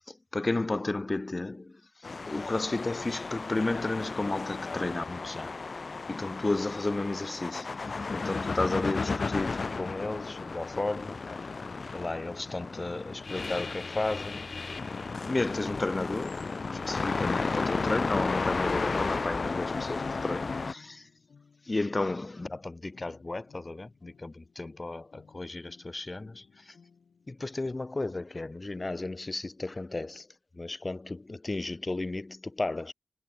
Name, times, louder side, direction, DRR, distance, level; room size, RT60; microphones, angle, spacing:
voice 1, 0.1-5.5 6.1-11.5 11.9-14.5 15.2-21.1 21.7-26.7 27.3-30.3 30.6-32.9, left 2 dB, 30° left, 0.9 m, -33 dB
sound 1, 2.0-20.7, left 4 dB, 50° left, 0.3 m, -34 dB
sound 2, 9.8-27.3, left 5 dB, 90° left, 7.8 m, -59 dB
wide cardioid pair, 125°, 0 cm